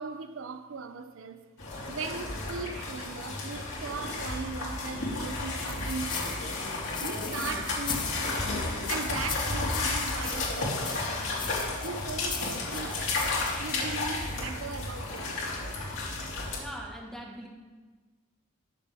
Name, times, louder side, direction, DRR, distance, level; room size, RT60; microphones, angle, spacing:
voice 1, 0.0-1.5 1.9-6.6 7.0-8.5 8.9-11.5 11.8-15.6, right 5 dB, 70° right, 0.5 m, -39 dB
sound 1, 1.6-16.6, left 2 dB, 70° left, 2.8 m, -32 dB
sound 2, 5.6-8.5 8.9-10.6 10.8-13.8, left 7 dB, 20° left, 0.7 m, -39 dB
voice 2, 16.6-17.5, equal, ahead, 1.5 m, -41 dB
19.5 x 6.8 x 3.5 m
head